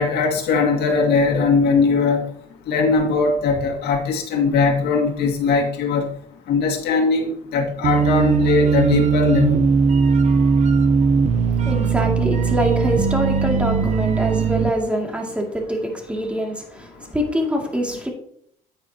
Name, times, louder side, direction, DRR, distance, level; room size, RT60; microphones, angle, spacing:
voice 1, 0.0-2.2 2.7-6.1 6.5-9.6, left 4 dB, 75° left, 2.2 m, -20 dB
sound 1, 7.8-14.7, right 5 dB, 45° right, 0.9 m, -18 dB
voice 2, 11.4-18.1, equal, 5° right, 2.4 m, -24 dB
9.4 x 9.0 x 2.9 m
cardioid pair, 110°, 17 cm